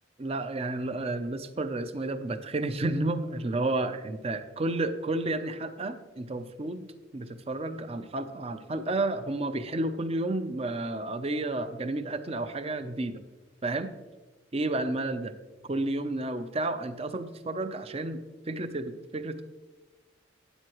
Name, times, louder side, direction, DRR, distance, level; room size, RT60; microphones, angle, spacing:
voice 1, 0.2-6.9 7.1-13.2 13.6-13.9 14.5-15.3 15.6-19.4, right 2 dB, 30° right, 10 dB, 0.5 m, -31 dB
12.5 x 9.4 x 3.0 m, 1.2 s
head